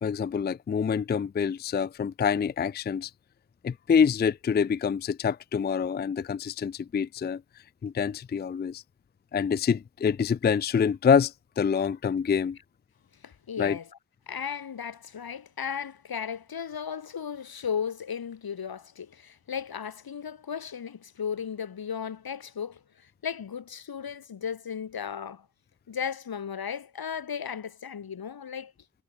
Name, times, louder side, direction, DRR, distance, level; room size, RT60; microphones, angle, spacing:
voice 1, 0.0-3.1 3.6-7.4 7.8-8.8 9.3-12.6 13.6-13.8, left 6 dB, 30° left, 0.4 m, -26 dB
voice 2, 13.2-13.9 14.3-25.5 25.9-28.7, left 7 dB, 85° left, 5.4 m, -35 dB
wide cardioid pair, 175°, 35 cm